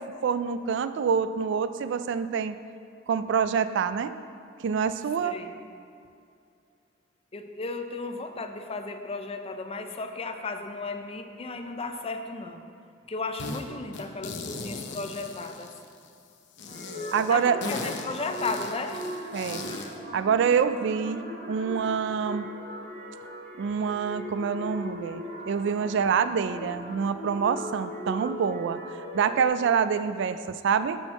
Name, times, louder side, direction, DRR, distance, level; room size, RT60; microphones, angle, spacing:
voice 1, 0.0-2.6 3.1-4.2 4.6-5.4 17.1-17.6 19.3-19.6 20.1-22.5 23.6-28.8 29.1-31.0, right 6 dB, 65° right, 12 dB, 0.3 m, -26 dB
voice 2, 5.2-5.5 7.3-12.7 13.1-15.7 17.2-19.0, left 3 dB, 30° left, 6 dB, 0.6 m, -34 dB
sound 1, 13.4-13.6 13.9-16.1 16.6-20.0, left 3 dB, 65° left, 0.8 m, -38 dB
sound 2, 16.7-29.5, equal, 40° right, 1.9 m, -39 dB
12.5 x 4.5 x 4.4 m, 2.5 s
head